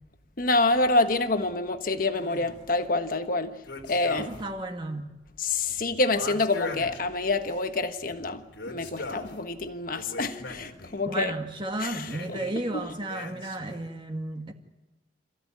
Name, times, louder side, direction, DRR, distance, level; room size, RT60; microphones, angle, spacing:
voice 1, 0.4-3.5 3.9-4.3 5.4-11.3 11.8-12.4 12.7-12.8, left 2 dB, 50° left, 1.4 m, -27 dB
sound 1, 2.1-2.7 3.6-4.6 4.8-4.9 6.1-7.6 8.5-9.4 9.9-11.0 12.0-12.6 13.1-13.8, left 2 dB, 90° left, 3.4 m, -39 dB
voice 2, 4.2-5.1 11.1-14.5, right 1 dB, 25° right, 1.8 m, -33 dB
27.0 x 15.5 x 9.6 m
head